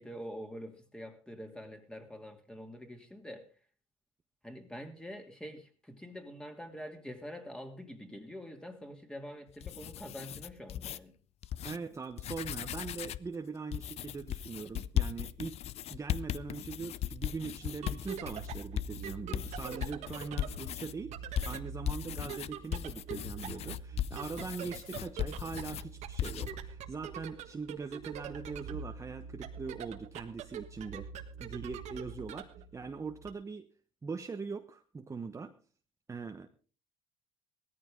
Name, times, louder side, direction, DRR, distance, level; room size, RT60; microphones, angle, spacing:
voice 1, 0.0-3.5 4.4-11.1, equal, 5° left, 5 dB, 2.7 m, -45 dB
sound 1, 9.5-11.0 11.4-11.8 12.1-13.3 13.7-20.9 21.4-25.9 26.2-26.5, left 11 dB, 55° left, 0.6 m, -37 dB
voice 2, 11.6-15.6 15.9-21.2 21.5-31.1 31.4-33.7 34.0-35.5 36.1-36.5, right 4 dB, 25° right, 5 dB, 1.1 m, -41 dB
sound 2, 17.6-33.3, right 7 dB, 70° right, 1.6 m, -44 dB
17.5 x 14.0 x 3.8 m, 0.37 s
cardioid pair, 95°, 12 cm